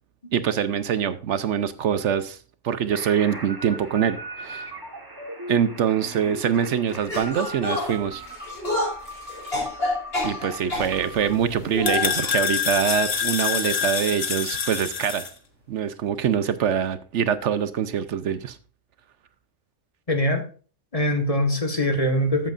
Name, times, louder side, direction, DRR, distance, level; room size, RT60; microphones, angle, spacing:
voice 1, 0.3-2.4 2.6-4.7 5.5-8.2 10.2-15.3 15.7-18.6, right 8 dB, 70° right, 1.0 m, -24 dB
sound 1, 2.9-11.3, equal, 20° right, 1.3 m, -38 dB
sound 2, 7.1-10.9 11.7-12.4 13.1-13.4 13.7-13.8 14.8-14.9, left 1 dB, 50° left, 3.9 m, -29 dB
sound 3, 10.7-15.3, left 7 dB, 75° left, 1.6 m, -27 dB
voice 2, 20.1-20.4 20.9-22.5, left 1 dB, 30° left, 1.5 m, -22 dB
13.5 x 7.7 x 2.5 m
omnidirectional pair, 1.3 m